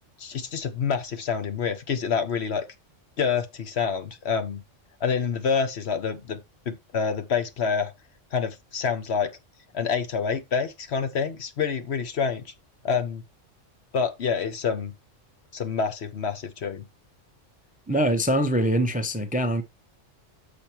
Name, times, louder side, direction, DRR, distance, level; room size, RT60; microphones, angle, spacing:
voice 1, 0.2-2.6 3.2-4.6 5.0-6.4 6.7-7.9 8.3-9.3 9.7-12.5 12.8-13.2 13.9-14.9 15.5-16.9, left 6 dB, 60° left, 1.2 m, -27 dB
voice 2, 17.9-19.6, equal, 10° right, 0.6 m, -23 dB
7.0 x 5.2 x 4.4 m
omnidirectional pair, 1.3 m